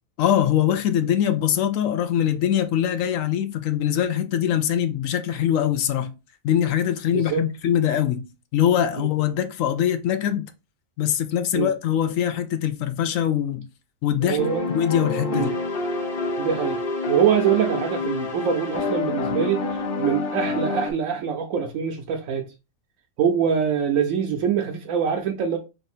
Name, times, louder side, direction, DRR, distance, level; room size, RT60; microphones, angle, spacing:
voice 1, 0.2-6.1 6.4-8.2 8.5-10.5 11.0-13.7 14.0-14.4 14.7-15.6, left 10 dB, 80° left, 1.0 m, -22 dB
voice 2, 14.2-14.7 15.3-15.5 16.4-16.8 17.1-22.5 23.2-25.6, right 8 dB, 80° right, 1.0 m, -24 dB
sound 1, 14.4-20.9, left 2 dB, 50° left, 0.9 m, -27 dB
3.4 x 2.6 x 4.1 m
omnidirectional pair, 1.4 m